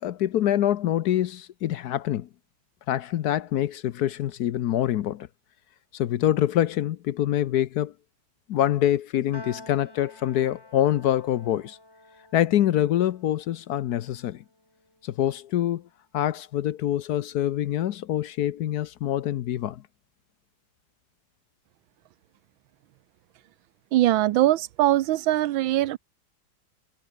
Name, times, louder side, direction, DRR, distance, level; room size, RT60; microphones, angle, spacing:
voice 1, 0.0-2.3 2.9-5.3 5.9-7.9 8.5-11.8 12.3-14.4 15.0-15.8 16.1-19.8, left 12 dB, 65° left, 1.0 m, -25 dB
Piano, 9.3-15.8, left 1 dB, 10° left, 2.8 m, -50 dB
voice 2, 23.9-26.0, right 14 dB, 85° right, 1.5 m, -21 dB
omnidirectional pair, 2.2 m